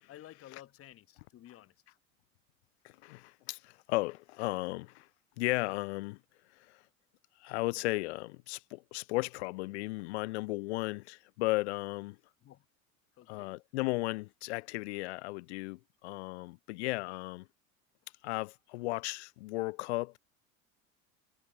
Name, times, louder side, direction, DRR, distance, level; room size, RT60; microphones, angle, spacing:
voice 1, 0.1-1.7 12.4-12.7 13.1-13.6, left 13 dB, 35° left, 1.3 m, -53 dB
voice 2, 2.8-5.1 5.4-6.2 6.6-6.8 7.4-12.2 13.3-17.5 18.2-20.2, left 22 dB, 55° left, 0.5 m, -35 dB
figure-of-eight pair, 75°, 41 cm